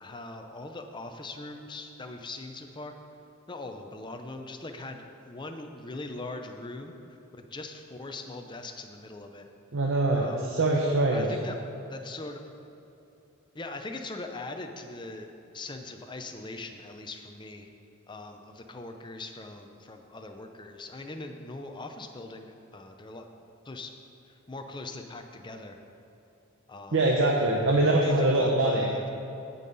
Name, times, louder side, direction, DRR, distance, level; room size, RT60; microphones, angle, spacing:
voice 1, 0.0-2.9 3.5-7.0 7.3-9.5 10.1-10.4 11.1-11.6 11.9-12.4 13.5-15.3 15.5-17.7 18.1-23.3 23.6-23.9 24.3-25.8 26.7-27.0 27.7-29.1, left 2 dB, 20° left, 5 dB, 0.6 m, -41 dB
voice 2, 9.7-11.3 26.9-28.9, right 2 dB, 60° right, -1 dB, 0.8 m, -23 dB
16.0 x 5.5 x 4.0 m, 2.9 s
head